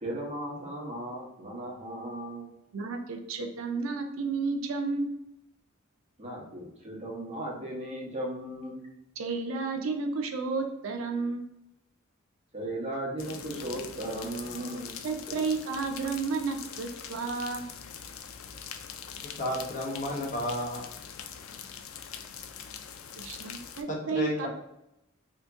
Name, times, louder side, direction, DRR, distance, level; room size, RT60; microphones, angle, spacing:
voice 1, 0.0-2.5 6.2-8.8 12.5-14.9, right 1 dB, 30° right, -3 dB, 1.0 m, -36 dB
voice 2, 2.7-5.1 9.2-11.4 15.0-17.7 23.2-24.5, right 4 dB, 70° right, 4 dB, 0.5 m, -32 dB
sound 1, 13.2-23.8, left 7 dB, 85° left, 0.4 m, -43 dB
voice 3, 19.4-20.8 23.9-24.5, left 1 dB, 40° left, -2 dB, 0.8 m, -32 dB
2.8 x 2.5 x 3.4 m, 0.84 s
head